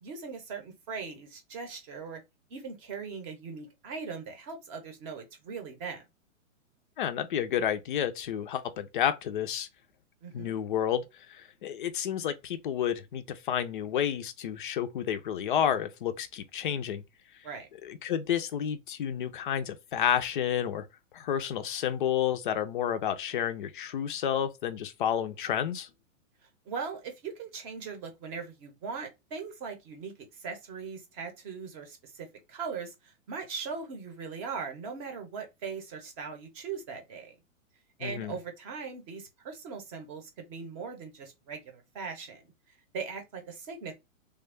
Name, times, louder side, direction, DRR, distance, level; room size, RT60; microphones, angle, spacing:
voice 1, 0.0-2.2 2.5-6.0 10.2-10.6 17.4-17.7 26.7-37.3 38.0-42.5 42.9-43.9, right 5 dB, 25° right, 0.7 m, -40 dB
voice 2, 7.0-9.7 10.3-17.0 17.8-20.9 21.1-25.9 38.0-38.4, left 9 dB, 40° left, 0.5 m, -30 dB
3.5 x 2.2 x 3.4 m
hypercardioid pair, 155°, 40 cm